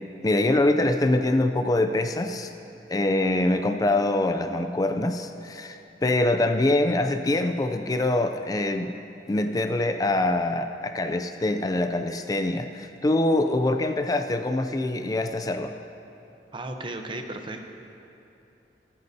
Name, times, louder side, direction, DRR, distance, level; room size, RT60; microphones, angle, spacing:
voice 1, 0.2-2.5 2.9-8.9 9.3-15.7, left 2 dB, 20° left, 7 dB, 0.4 m, -24 dB
voice 2, 16.5-17.6, right 2 dB, 30° right, 5 dB, 0.7 m, -35 dB
24.0 x 9.4 x 2.7 m, 2.9 s
head